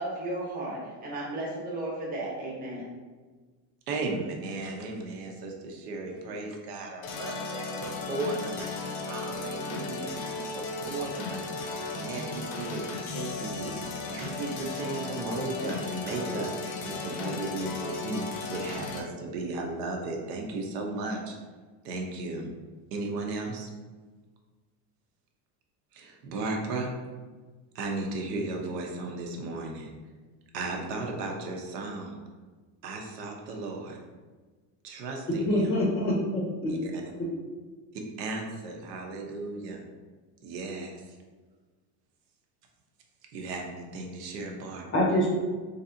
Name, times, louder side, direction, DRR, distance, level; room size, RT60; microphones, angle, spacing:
voice 1, 0.0-2.9, right 1 dB, 20° right, -5 dB, 0.8 m, -34 dB
voice 2, 3.9-10.2 10.5-11.6 11.9-13.8 14.1-21.3 21.8-22.5 22.9-23.7 25.9-26.9 27.7-29.9 30.5-32.2 32.8-34.0 34.8-35.7 36.7-37.0 38.2-39.8 40.4-41.2 43.3-44.9, right 2 dB, 85° right, 1 dB, 0.8 m, -35 dB
sound 1, 7.0-19.0, left 3 dB, 70° left, 0.7 m, -35 dB
voice 3, 35.4-36.7 44.9-45.3, left 1 dB, 30° left, -2 dB, 0.5 m, -25 dB
3.3 x 2.7 x 2.5 m, 1.4 s
supercardioid pair, 140°, 47 cm